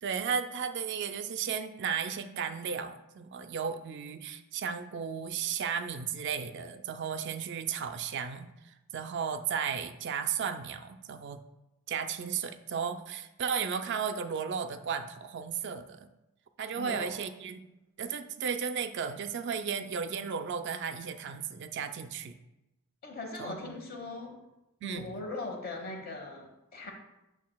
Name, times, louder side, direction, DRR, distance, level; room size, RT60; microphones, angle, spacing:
voice 1, 0.0-11.4 11.9-16.1 16.6-17.7 18.0-22.4 23.4-23.7 24.8-25.2, right 6 dB, 50° right, 9 dB, 0.4 m, -34 dB
voice 2, 16.8-17.2 23.0-24.4 24.8-26.9, left 2 dB, 45° left, 2 dB, 1.2 m, -40 dB
8.4 x 6.2 x 2.3 m, 0.94 s
head